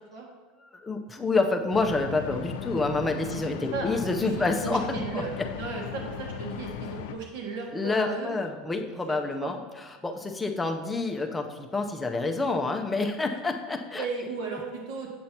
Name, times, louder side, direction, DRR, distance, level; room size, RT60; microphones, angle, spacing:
voice 1, 0.6-5.2 7.7-14.1, left 3 dB, 10° left, 3 dB, 0.4 m, -28 dB
sound 1, 1.7-7.1, left 8 dB, 75° left, 0.5 m, -37 dB
voice 2, 4.2-5.3 5.6-8.3 9.4-9.5 14.0-15.1, right 4 dB, 65° right, 0 dB, 1.4 m, -35 dB
7.6 x 2.8 x 5.9 m, 1.3 s
supercardioid pair, 165°, 0 cm